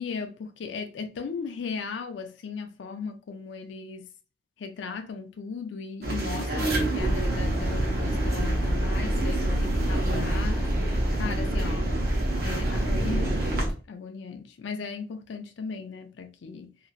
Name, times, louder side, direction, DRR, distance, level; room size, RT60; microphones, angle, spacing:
voice 1, 0.0-4.1 4.6-12.0 12.4-16.8, left 5 dB, 85° left, 0.4 m, -37 dB
sound 1, 6.0-13.7, right 2 dB, 55° right, 0.8 m, -30 dB
sound 2, 7.0-13.7, equal, 5° right, 0.6 m, -27 dB
2.9 x 2.5 x 2.4 m
head